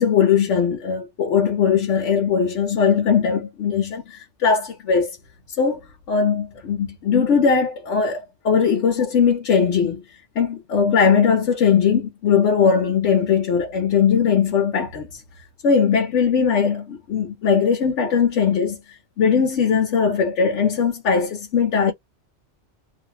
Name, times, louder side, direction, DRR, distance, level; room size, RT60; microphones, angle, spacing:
voice 1, 0.0-5.2 5.6-5.8 6.1-10.0 10.4-15.2 15.6-18.8 19.2-21.9, left 6 dB, 80° left, 1.1 m, -19 dB
2.5 x 2.5 x 2.8 m
omnidirectional pair, 1.2 m